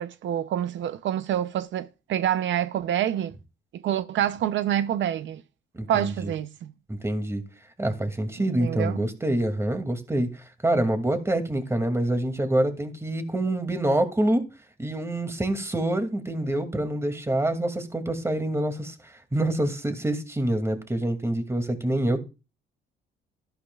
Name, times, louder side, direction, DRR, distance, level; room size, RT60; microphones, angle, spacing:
voice 1, 0.0-3.3 3.7-5.4 5.9-6.5 8.4-9.1, right 11 dB, 70° right, 0.7 m, -27 dB
voice 2, 5.7-6.3 6.9-7.4 7.8-10.3 10.6-14.4 14.8-18.9 19.3-22.2, right 1 dB, 15° right, 2.4 m, -26 dB
13.5 x 11.5 x 2.4 m
cardioid pair, 90°, 20 cm